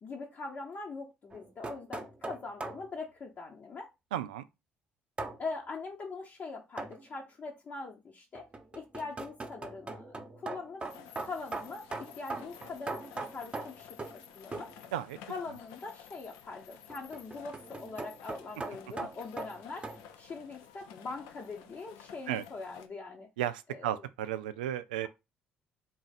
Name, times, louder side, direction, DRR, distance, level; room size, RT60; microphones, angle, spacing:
voice 1, 0.0-3.9 5.4-8.4 8.7-10.8 11.2-14.7 15.3-19.8 20.2-23.3 23.7-24.0, left 4 dB, 45° left, 0.9 m, -42 dB
sound 1, 1.3-2.9 5.2-5.4 6.8-7.0 8.3-14.2 14.5-14.8 16.9-20.0, right 3 dB, 25° right, 0.9 m, -40 dB
voice 2, 4.1-4.5 14.9-15.2 22.3-22.5 23.4-25.1, right 11 dB, 90° right, 0.3 m, -34 dB
sound 2, 10.8-22.9, left 8 dB, 80° left, 0.5 m, -53 dB
3.8 x 2.5 x 4.1 m
hypercardioid pair, 60°, 5 cm